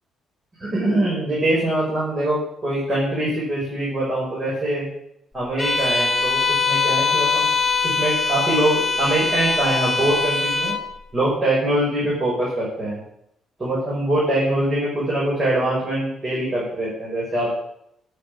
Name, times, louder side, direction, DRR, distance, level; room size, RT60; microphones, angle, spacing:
voice 1, 0.6-4.9 5.3-7.5 7.8-10.8 11.1-13.0 13.6-17.5, right 1 dB, 30° right, -7 dB, 4.8 m, -23 dB
Bowed string instrument, 5.6-10.9, left 4 dB, 10° left, 1.4 m, -22 dB
9.0 x 6.7 x 6.4 m, 0.74 s
cardioid pair, 90°, 0 cm